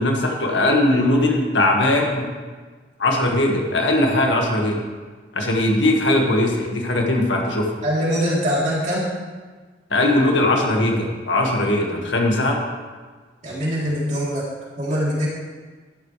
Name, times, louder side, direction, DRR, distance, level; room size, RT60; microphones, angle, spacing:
voice 1, 0.0-2.3 3.0-4.8 5.3-7.7 9.9-12.6, left 1 dB, 90° left, 0 dB, 1.9 m, -19 dB
voice 2, 7.8-9.1 13.4-14.5 14.8-15.3, equal, 40° right, -7 dB, 3.6 m, -22 dB
13.0 x 11.5 x 3.4 m, 1.4 s
head